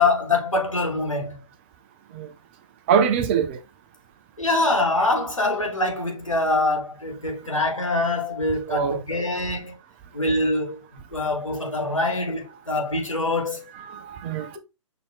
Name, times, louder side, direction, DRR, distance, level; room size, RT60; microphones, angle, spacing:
voice 1, 0.0-1.4 4.4-9.7 10.1-13.6, left 2 dB, 85° left, 1.9 m, -24 dB
voice 2, 2.9-3.6 8.7-9.0 13.7-14.6, right 7 dB, 20° right, 0.4 m, -23 dB
6.0 x 2.7 x 2.7 m
figure-of-eight pair, 125°, 16 cm